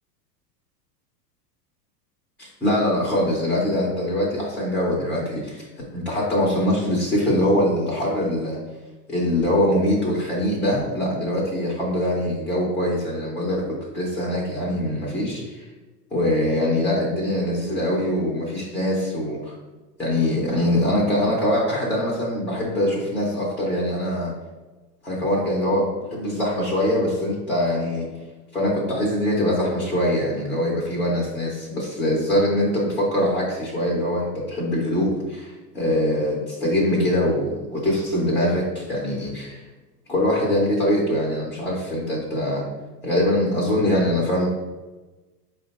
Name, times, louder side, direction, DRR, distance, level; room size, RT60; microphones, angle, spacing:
voice 1, 2.4-5.7 5.9-8.6 9.1-13.7 13.9-15.7 16.1-19.5 20.0-24.3 25.0-28.1 28.5-39.6 40.1-42.6 43.0-44.5, left 1 dB, 5° left, -4 dB, 0.4 m, -23 dB
4.9 x 2.2 x 4.0 m, 1.2 s
hypercardioid pair, 120°, 49 cm